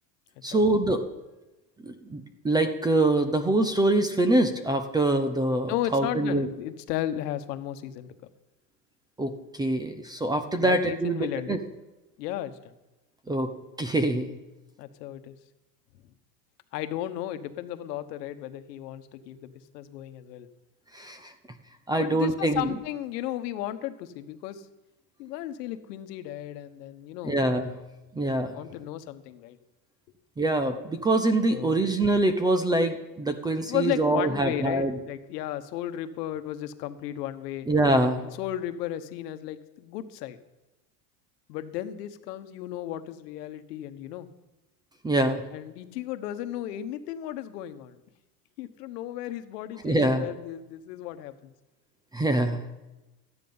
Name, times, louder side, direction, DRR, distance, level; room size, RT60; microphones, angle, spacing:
voice 1, 0.4-1.0 1.8-6.5 9.2-11.6 13.3-13.5 13.8-14.3 20.9-21.3 21.9-22.7 27.2-27.8 28.1-28.6 30.4-35.0 37.7-38.3 45.0-45.5 49.8-50.3 52.1-52.7, right 2 dB, 10° right, 8 dB, 0.5 m, -24 dB
voice 2, 5.7-8.2 10.6-11.6 12.2-12.7 14.8-15.4 16.7-20.5 22.0-24.7 25.2-27.4 28.5-29.6 31.5-31.8 33.6-37.7 38.4-40.4 41.5-44.3 45.5-48.0 48.6-51.5, left 12 dB, 80° left, 10 dB, 1.2 m, -34 dB
13.5 x 9.6 x 5.4 m, 1.0 s
supercardioid pair, 140°, 48 cm